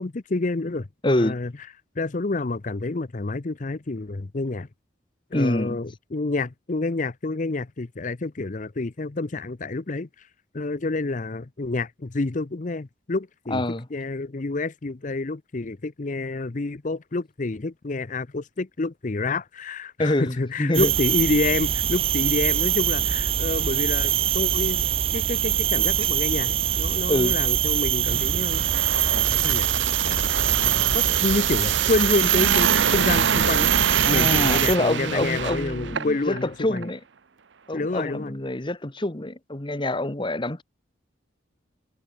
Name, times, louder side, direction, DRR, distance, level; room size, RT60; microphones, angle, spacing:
voice 1, 0.0-1.5 2.0-4.7 5.3-10.1 10.5-13.6 13.9-28.6 29.1-29.7 30.1-30.3 30.9-33.7 34.1-36.9 37.7-38.3, left 3 dB, 40° left, 0.7 m, -28 dB
voice 2, 1.0-1.4 5.3-5.8 13.5-13.8 20.0-20.9 27.1-27.4 34.0-37.0 37.7-40.6, left 1 dB, 25° left, 1.2 m, -26 dB
sound 1, 20.7-34.8, right 10 dB, 30° right, 0.4 m, -23 dB
sound 2, 28.1-36.4 36.8-36.9, right 7 dB, 65° right, 0.7 m, -26 dB
head